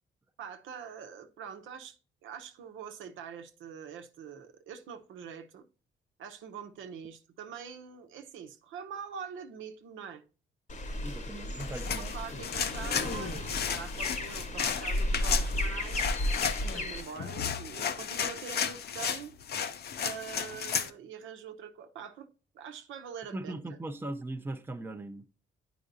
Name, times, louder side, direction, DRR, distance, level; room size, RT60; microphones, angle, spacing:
voice 1, 0.4-5.6 6.2-10.2 12.0-16.0 16.7-19.3 20.0-22.3 22.5-23.5, right 7 dB, 80° right, 0.9 m, -44 dB
sound 1, 10.7-17.0, left 1 dB, 40° left, 1.0 m, -33 dB
voice 2, 11.0-12.1 23.3-25.3, right 2 dB, 10° right, 0.6 m, -39 dB
sound 2, 11.6-20.9, left 7 dB, 55° left, 0.6 m, -34 dB
9.1 x 5.0 x 2.6 m
cardioid pair, 90°, 20 cm